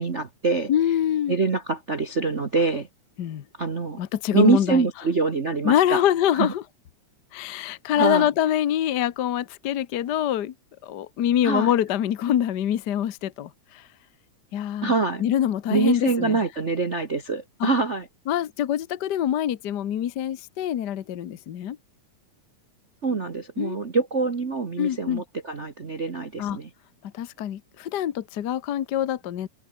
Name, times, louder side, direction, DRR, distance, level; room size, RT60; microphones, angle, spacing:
voice 1, 0.0-0.7 1.3-2.9 3.6-4.0 4.3-6.0 6.3-6.5 8.0-8.3 11.4-11.7 14.8-15.2 15.7-18.0 23.0-26.7, right 4 dB, 40° right, 1.0 m, -24 dB
voice 2, 0.7-1.4 3.2-3.4 4.0-4.9 5.6-6.6 7.3-10.5 10.8-13.9 14.5-14.9 15.2-16.4 17.6-17.7 18.3-21.8 23.6-23.8 24.8-25.2 26.4-26.6 27.1-29.5, left 11 dB, 65° left, 1.0 m, -25 dB
omnidirectional pair, 3.3 m